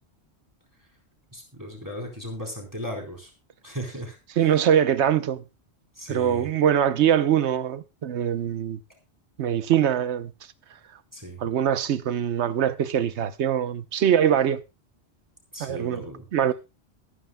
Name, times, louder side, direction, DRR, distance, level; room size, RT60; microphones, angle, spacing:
voice 1, 1.3-3.3 3.6-4.5 6.0-6.5 11.1-11.4 15.5-16.3, equal, 15° right, 3.9 m, -36 dB
voice 2, 4.4-5.4 6.1-8.8 9.4-10.3 11.4-14.6 15.6-16.0 16.3-16.5, right 9 dB, 85° right, 1.1 m, -23 dB
23.0 x 9.9 x 2.2 m
omnidirectional pair, 1.1 m